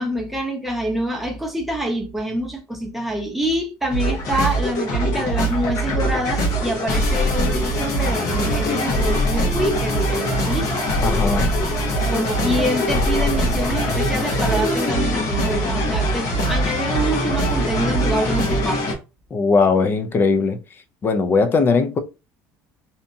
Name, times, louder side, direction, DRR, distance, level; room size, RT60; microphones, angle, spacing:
voice 1, 0.0-10.8 12.1-18.8, equal, ahead, 0.7 m, -26 dB
sound 1, 3.9-18.9, equal, 50° left, 0.9 m, -22 dB
voice 2, 11.0-11.5 19.3-20.6 21.0-22.0, left 4 dB, 30° left, 0.4 m, -19 dB
2.8 x 2.2 x 2.6 m
cardioid pair, 125°, 8 cm